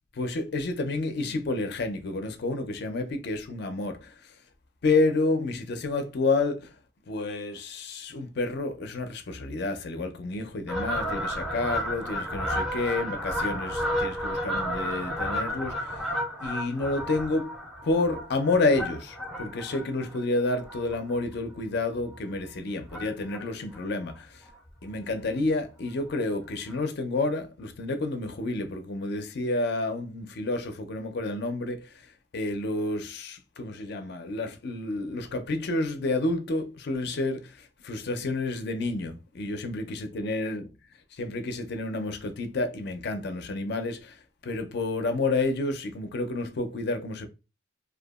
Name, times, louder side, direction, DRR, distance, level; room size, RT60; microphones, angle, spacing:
voice 1, 0.2-4.1 4.8-6.7 7.1-16.0 16.4-17.5 17.9-24.3 24.8-31.9 32.3-40.7 41.2-44.2 44.4-47.3, left 2 dB, 60° left, 0.4 m, -29 dB
Fowl, 10.7-21.5 21.9-22.2 22.9-23.5 23.7-23.8 24.1-24.2 24.5-24.6 24.9-25.1 26.1-26.2 26.7-26.8, equal, ahead, 0.5 m, -32 dB
2.7 x 2.3 x 2.3 m
head